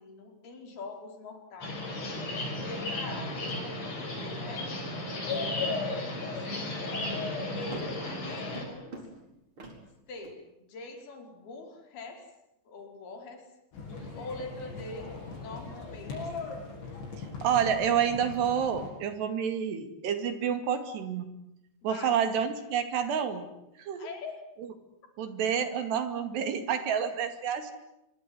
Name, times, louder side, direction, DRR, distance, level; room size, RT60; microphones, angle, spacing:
voice 1, 0.0-1.9 2.5-3.8 4.1-4.7 5.2-6.7 7.4-9.1 10.1-10.4 10.7-12.2 12.7-13.5 14.1-16.3 21.8-22.2 24.0-24.3, left 3 dB, 55° left, 3 dB, 6.5 m, -44 dB
sound 1, 1.6-8.6, left 2 dB, 35° left, 6.6 m, -34 dB
sound 2, 4.9-5.6 6.6-10.3, right 2 dB, 30° right, 4.9 m, -47 dB
sound 3, 13.7-18.9, left 3 dB, 75° left, 8.9 m, -40 dB
voice 2, 17.2-21.3 21.8-23.5 23.8-24.1 24.6-24.7 25.2-27.7, right 8 dB, 65° right, 9 dB, 4.3 m, -29 dB
25.5 x 23.5 x 9.6 m, 0.86 s
omnidirectional pair, 5.4 m